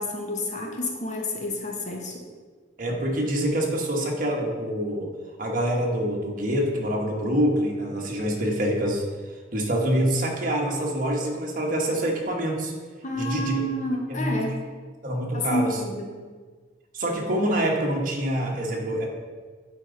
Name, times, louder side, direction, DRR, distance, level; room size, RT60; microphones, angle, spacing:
voice 1, 0.0-2.2 13.0-14.6 15.3-16.1, left 1 dB, 40° left, 1 dB, 1.0 m, -29 dB
voice 2, 2.8-5.1 5.4-9.0 9.5-12.7 13.1-13.7 14.1-14.4 15.0-15.8 16.9-19.1, equal, 50° right, 0 dB, 1.2 m, -26 dB
8.6 x 4.9 x 3.8 m, 1.5 s
head